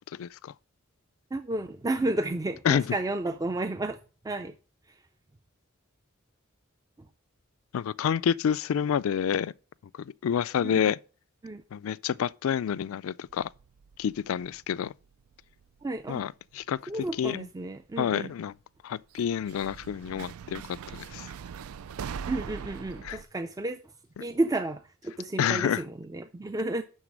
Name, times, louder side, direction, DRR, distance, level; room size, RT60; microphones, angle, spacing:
voice 1, 0.2-0.5 2.7-3.0 7.7-9.5 10.2-11.0 11.7-13.5 14.0-14.9 16.1-17.5 18.0-18.5 18.8-21.3 23.0-23.2 24.2-24.3 25.4-25.8, left 8 dB, 70° left, 0.3 m, -28 dB
voice 2, 1.3-4.0 4.2-4.5 10.6-10.8 11.4-11.6 15.8-16.2 16.9-18.3 22.3-23.8 24.2-26.8, right 2 dB, 15° right, 0.4 m, -31 dB
sound 1, 13.3-15.3 15.6-16.3 17.4-17.5 19.1-23.2, right 7 dB, 85° right, 0.4 m, -41 dB
11.0 x 4.0 x 6.2 m
head